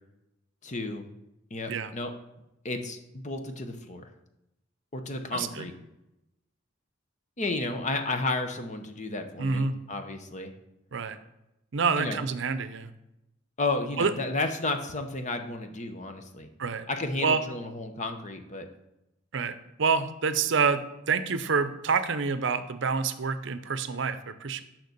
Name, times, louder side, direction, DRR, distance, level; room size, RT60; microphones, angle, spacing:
voice 1, 0.6-1.0 1.5-2.1 2.6-4.0 4.9-5.7 7.4-10.5 12.0-12.2 13.6-16.5 16.9-18.7, left 2 dB, 35° left, 7 dB, 0.9 m, -32 dB
voice 2, 5.3-5.7 9.4-9.8 10.9-11.2 11.7-12.9 14.0-14.1 16.6-16.9 17.2-17.4 19.3-24.6, right 5 dB, 65° right, 12 dB, 0.6 m, -27 dB
6.6 x 5.9 x 6.7 m, 0.89 s
head